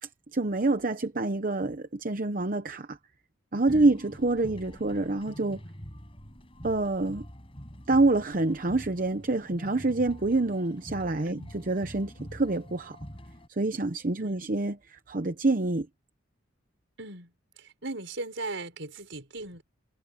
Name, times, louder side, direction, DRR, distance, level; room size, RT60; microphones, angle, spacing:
voice 1, 0.3-3.0 3.5-5.6 6.6-7.2 7.9-13.0 13.6-15.9, right 2 dB, 45° right, 0.9 m, -27 dB
sound 1, 3.7-13.5, equal, 30° left, 7.4 m, -45 dB
voice 2, 17.0-17.3 17.6-19.6, right 2 dB, 65° right, 6.3 m, -38 dB
head